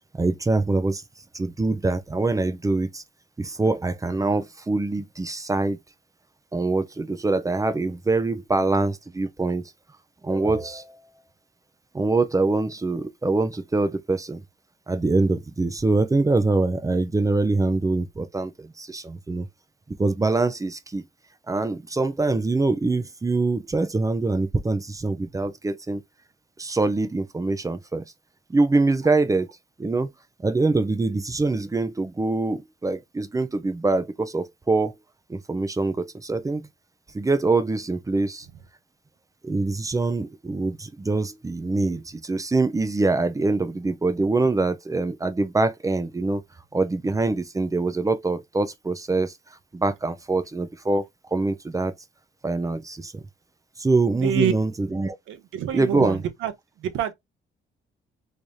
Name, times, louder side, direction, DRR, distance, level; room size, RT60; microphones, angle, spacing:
voice 1, 0.1-1.0 1.3-3.0 3.4-5.8 6.5-9.6 10.2-11.0 11.9-14.4 14.9-19.5 20.0-21.0 21.5-26.0 26.6-28.0 28.5-29.5 29.8-30.1 30.4-34.9 35.3-36.7 37.1-38.5 39.4-46.4 46.7-49.3 49.7-51.1 51.3-51.9 52.4-53.2 53.8-55.2 55.7-56.2, right 3 dB, 15° right, 0.5 m, -24 dB
voice 2, 54.2-54.5 55.3-56.5 56.8-57.1, right 9 dB, 85° right, 0.9 m, -26 dB
3.4 x 3.2 x 2.7 m
cardioid pair, 90°, 20 cm